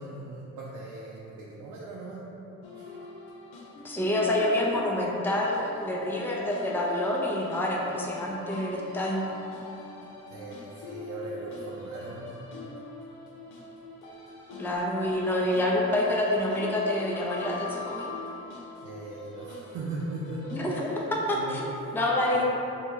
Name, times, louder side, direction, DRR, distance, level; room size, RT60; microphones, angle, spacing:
voice 1, 0.0-2.2 2.8-2.9 10.3-12.4 18.8-20.6 21.3-22.0 22.3-22.4, right 2 dB, 75° right, -5 dB, 0.6 m, -39 dB
sound 1, 2.6-21.4, left 2 dB, 85° left, 0.8 m, -42 dB
voice 2, 3.8-9.3 14.6-18.1 20.5-22.4, left 1 dB, 5° left, -3 dB, 0.5 m, -27 dB
3.3 x 2.8 x 4.5 m, 3.0 s
cardioid pair, 90°, 30 cm